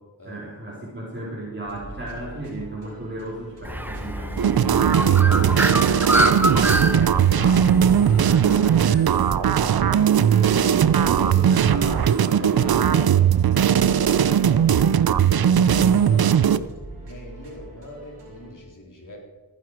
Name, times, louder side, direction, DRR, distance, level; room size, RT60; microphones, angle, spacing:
voice 1, 0.3-7.7 8.0-10.7 10.9-12.6 13.5-13.6, right 1 dB, 25° right, -6 dB, 3.5 m, -35 dB
sound 1, 1.6-18.5, right 2 dB, 90° right, 4.6 m, -43 dB
Bird, 3.6-8.9, equal, 5° right, 1.0 m, -26 dB
sound 2, 4.4-16.6, right 9 dB, 60° right, 0.6 m, -18 dB
voice 2, 11.3-13.2 13.7-16.6 17.0-19.2, left 1 dB, 45° left, -1 dB, 3.7 m, -41 dB
15.5 x 9.8 x 4.7 m, 1.2 s
wide cardioid pair, 60°, 42 cm